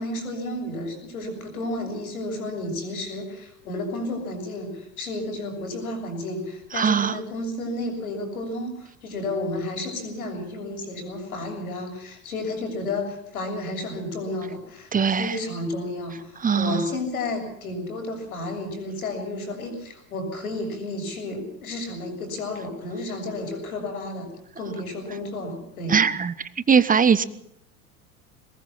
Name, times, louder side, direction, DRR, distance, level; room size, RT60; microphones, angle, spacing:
voice 1, 0.0-14.9 15.2-24.3 24.6-26.0, left 2 dB, 75° left, 4 dB, 7.2 m, -32 dB
voice 2, 6.7-7.2 14.9-15.4 16.4-16.9 25.9-26.3 26.7-27.2, right 6 dB, 20° right, 15 dB, 1.2 m, -20 dB
22.0 x 20.5 x 5.8 m, 0.78 s
figure-of-eight pair, 80°, 43 cm